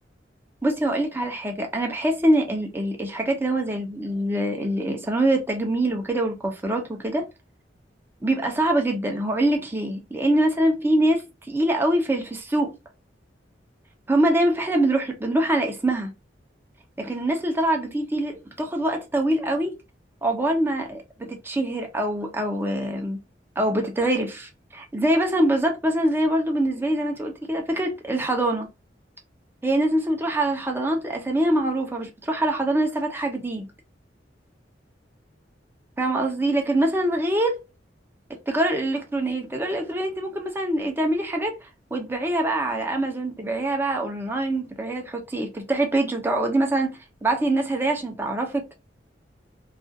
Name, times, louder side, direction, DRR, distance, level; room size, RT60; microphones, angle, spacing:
voice 1, 0.6-7.3 8.2-11.2 11.5-12.7 14.1-16.1 17.0-19.7 20.2-23.2 23.6-28.7 29.6-33.7 36.0-37.6 38.5-41.6 41.9-48.7, right 1 dB, 10° right, 0.5 m, -24 dB
2.4 x 2.3 x 2.6 m
head